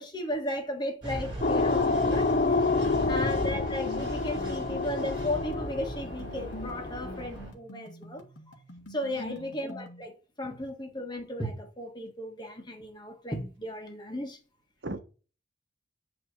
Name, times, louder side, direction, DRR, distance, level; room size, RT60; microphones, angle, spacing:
voice 1, 0.0-2.7 3.1-8.2 8.9-14.4, left 1 dB, 25° left, 1.5 m, -35 dB
sound 1, 1.0-7.5, right 1 dB, 25° right, 4.5 m, -38 dB
sound 2, 1.4-7.3, left 3 dB, 45° left, 0.5 m, -28 dB
sound 3, 2.0-10.0, equal, 85° left, 1.6 m, -47 dB
voice 2, 2.8-3.2 9.1-9.5 14.8-15.0, right 2 dB, 70° right, 1.0 m, -39 dB
8.3 x 3.3 x 6.0 m
head